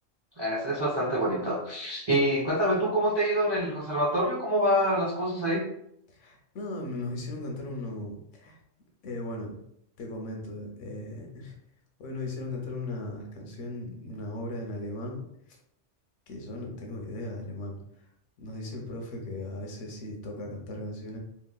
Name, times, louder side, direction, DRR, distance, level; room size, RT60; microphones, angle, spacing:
voice 1, 0.4-5.6, equal, 45° right, -5 dB, 0.3 m, -26 dB
voice 2, 6.1-8.6 9.0-9.6 10.0-11.5 12.0-15.2 15.5-15.6 16.3-17.8 18.4-21.2, left 2 dB, 85° left, 1 dB, 1.0 m, -37 dB
2.9 x 2.8 x 2.2 m, 0.74 s
omnidirectional pair, 1.2 m